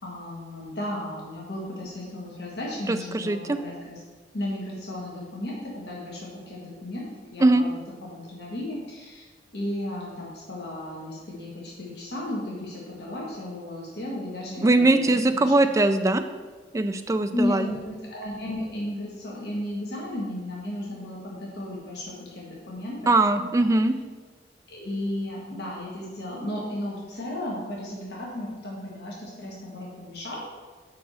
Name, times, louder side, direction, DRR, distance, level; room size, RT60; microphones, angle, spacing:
voice 1, 0.0-4.0 4.3-7.1 7.3-15.5 17.3-23.0 23.4-23.7 24.7-30.5, left 1 dB, 65° left, -4 dB, 1.5 m, -34 dB
voice 2, 2.9-3.6 7.4-7.6 14.6-16.2 16.7-17.7 23.1-23.9, right 2 dB, 20° right, 8 dB, 0.3 m, -21 dB
5.3 x 4.7 x 6.3 m, 1.4 s
head